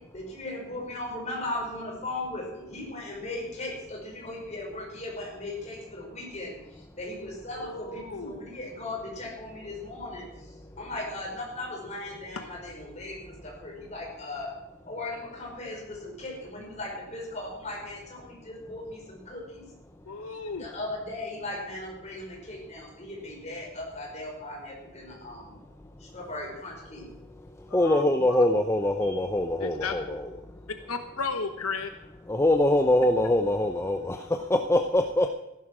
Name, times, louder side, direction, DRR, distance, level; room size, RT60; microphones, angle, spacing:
voice 1, 0.1-6.5 7.0-10.3 10.8-14.5 14.9-19.6 20.6-25.6 26.0-27.0 29.0-29.3, left 2 dB, 30° left, -2 dB, 5.2 m, -37 dB
voice 2, 7.5-8.4 12.3-12.4 20.1-20.7 27.7-28.5 29.6-29.9 30.9-31.9, left 4 dB, 80° left, 7 dB, 1.1 m, -34 dB
voice 3, 27.7-30.2 32.3-35.3, left 1 dB, 10° left, 5 dB, 0.6 m, -23 dB
14.5 x 11.5 x 6.1 m, 0.96 s
head